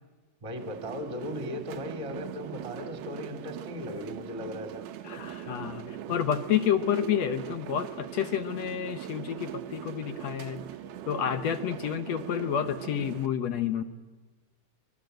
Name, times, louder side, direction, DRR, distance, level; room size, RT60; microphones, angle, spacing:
voice 1, 0.4-4.8, left 1 dB, 10° right, 6 dB, 1.8 m, -37 dB
sound 1, 0.6-13.3, right 11 dB, 85° right, 3.0 m, -41 dB
voice 2, 5.0-10.6 11.1-13.8, left 9 dB, 65° left, 10 dB, 1.8 m, -29 dB
28.0 x 22.0 x 7.9 m, 1.3 s
omnidirectional pair, 4.2 m